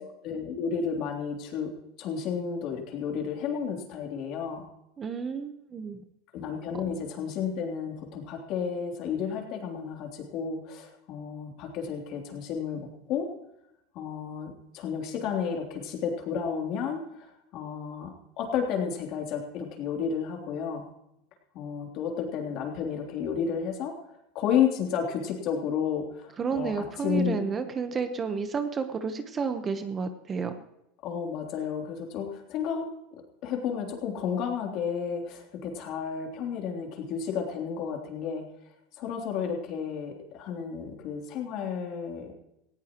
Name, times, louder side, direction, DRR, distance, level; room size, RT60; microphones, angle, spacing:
voice 1, 0.0-4.6 6.3-13.3 13.9-17.3 17.5-20.8 21.5-24.0 24.3-27.4 31.0-38.5 39.0-42.3, left 7 dB, 50° left, 2 dB, 3.3 m, -32 dB
voice 2, 5.0-6.0 26.4-30.5, right 5 dB, 20° right, 8 dB, 1.1 m, -31 dB
18.5 x 16.0 x 3.1 m, 0.85 s
supercardioid pair, 145°, 0 cm